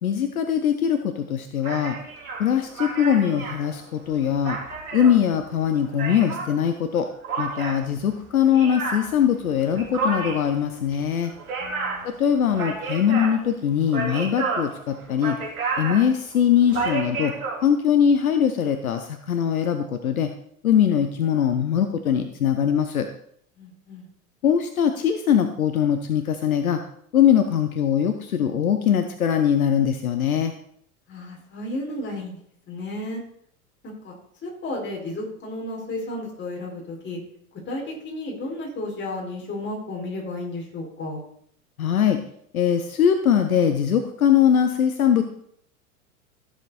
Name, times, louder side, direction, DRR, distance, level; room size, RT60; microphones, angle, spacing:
voice 1, 0.0-2.0 2.4-4.6 4.9-7.1 7.4-11.3 12.0-15.4 15.8-17.3 17.6-20.3 20.6-23.1 24.4-26.8 27.1-30.5 41.8-42.2 42.5-45.2, left 8 dB, 70° left, 8 dB, 1.0 m, -21 dB
sound 1, 1.6-6.6 7.2-17.6, right 4 dB, 70° right, 4.0 m, -31 dB
voice 2, 11.6-12.1 23.6-24.1 31.1-32.4 32.7-33.2 33.8-34.2 34.4-37.2 37.7-41.2, left 1 dB, 25° left, -1 dB, 4.6 m, -33 dB
14.5 x 7.5 x 4.1 m, 0.66 s
figure-of-eight pair, 85°, 44 cm